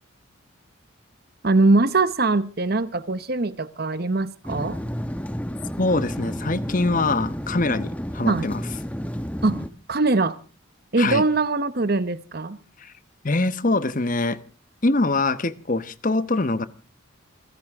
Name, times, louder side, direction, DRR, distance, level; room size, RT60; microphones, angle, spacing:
voice 1, 1.4-4.8 8.2-8.5 9.4-9.6 9.9-10.4 10.9-12.6, right 3 dB, 50° right, 14 dB, 0.9 m, -22 dB
sound 1, 4.4-9.7, equal, 5° left, 1.0 m, -31 dB
voice 2, 5.8-8.7 11.0-11.3 12.8-12.9 13.2-14.4 14.8-16.7, left 2 dB, 40° left, 14 dB, 1.0 m, -23 dB
29.0 x 11.5 x 3.6 m, 0.36 s
head